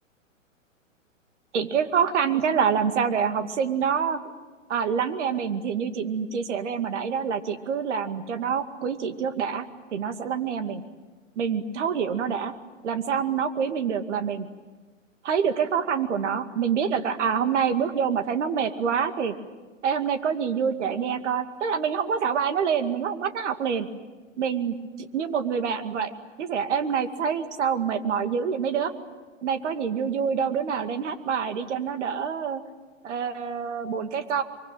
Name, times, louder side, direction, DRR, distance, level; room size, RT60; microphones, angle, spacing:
voice 1, 1.5-4.2 4.7-9.7 9.9-10.8 11.4-12.5 12.8-14.5 15.2-19.3 19.8-23.9 24.4-26.1 26.4-28.9 29.4-32.6 33.0-34.4, right 7 dB, 60° right, 8 dB, 2.4 m, -26 dB
24.5 x 23.5 x 9.1 m, 1.3 s
hypercardioid pair, 125°, 39 cm